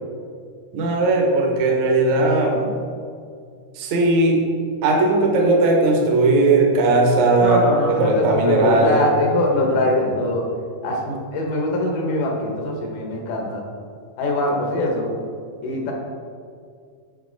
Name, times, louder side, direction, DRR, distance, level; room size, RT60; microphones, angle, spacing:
voice 1, 0.7-2.7 3.8-4.4 4.8-9.1, right 2 dB, 65° right, 0 dB, 2.2 m, -18 dB
voice 2, 7.4-10.5 10.8-13.6 14.2-15.1 15.6-15.9, left 1 dB, 75° left, 0 dB, 2.6 m, -22 dB
9.4 x 5.3 x 3.9 m, 2.2 s
omnidirectional pair, 3.8 m